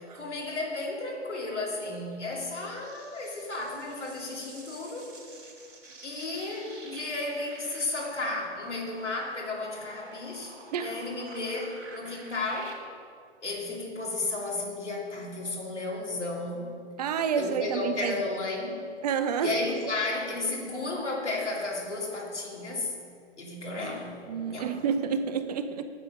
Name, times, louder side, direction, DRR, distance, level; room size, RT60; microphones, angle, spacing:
voice 1, 0.0-5.1 6.0-12.8 13.4-16.7 17.4-18.8 19.4-22.9 23.4-24.2 24.4-24.7, left 2 dB, 80° left, -2 dB, 2.6 m, -33 dB
sound 1, 2.1-12.7, right 3 dB, 85° right, 2.7 m, -49 dB
voice 2, 17.0-18.2 19.0-19.5 23.8-23.9 24.3-25.8, right 7 dB, 35° right, 9 dB, 0.6 m, -29 dB
9.1 x 7.8 x 5.4 m, 2.3 s
figure-of-eight pair, 115°, 35 cm